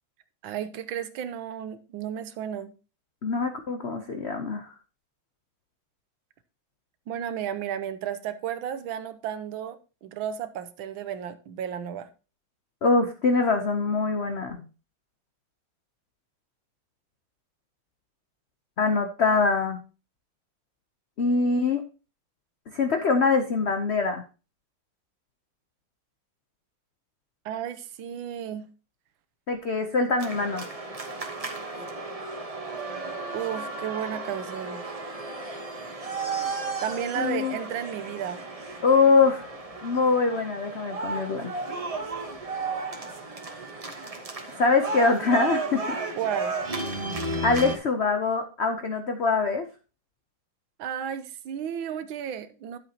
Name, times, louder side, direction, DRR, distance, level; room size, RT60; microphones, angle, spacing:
voice 1, 0.4-2.7 7.1-12.1 27.4-28.7 33.3-34.8 36.8-38.4 46.2-46.6 50.8-52.8, right 9 dB, 75° right, 1.5 m, -33 dB
voice 2, 3.2-4.7 12.8-14.6 18.8-19.8 21.2-21.8 22.7-24.2 29.5-30.6 37.2-37.6 38.8-39.4 39.8-41.5 44.5-46.0 47.4-49.7, left 4 dB, 70° left, 0.6 m, -23 dB
sound 1, 30.2-47.8, right 3 dB, 25° right, 0.7 m, -34 dB
11.0 x 8.0 x 2.8 m
omnidirectional pair, 2.3 m